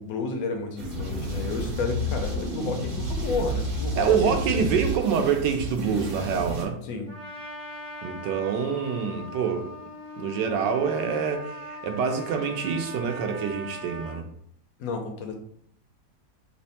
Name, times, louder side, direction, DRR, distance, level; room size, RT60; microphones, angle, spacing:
voice 1, 0.0-4.3 4.6-4.8 6.8-7.1 14.8-15.3, left 4 dB, 70° left, 4 dB, 0.8 m, -32 dB
sound 1, 0.8-6.6, equal, 55° right, 1.4 m, -31 dB
voice 2, 3.9-6.8 8.0-9.7 10.2-14.3, right 6 dB, 80° right, 5 dB, 1.2 m, -26 dB
Trumpet, 7.1-14.2, left 1 dB, 35° right, 0.6 m, -40 dB
3.3 x 2.1 x 4.1 m, 0.66 s
omnidirectional pair, 1.9 m